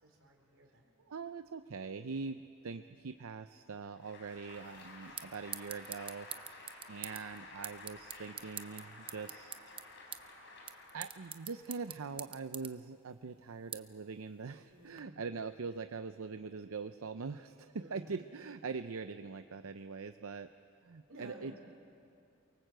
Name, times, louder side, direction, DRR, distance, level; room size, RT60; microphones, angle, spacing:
voice 1, 0.0-0.9 14.7-15.3 17.7-18.2 21.1-21.6, right 1 dB, 60° right, 0 dB, 4.5 m, -54 dB
voice 2, 1.0-9.6 10.9-20.5 20.8-21.5, right 4 dB, 80° right, 10 dB, 0.6 m, -43 dB
Applause, 3.9-11.7, left 2 dB, 55° left, 4.1 m, -53 dB
sound 1, 4.5-15.0, right 9 dB, 25° right, 0.6 m, -48 dB
24.0 x 23.5 x 7.8 m, 2.6 s
head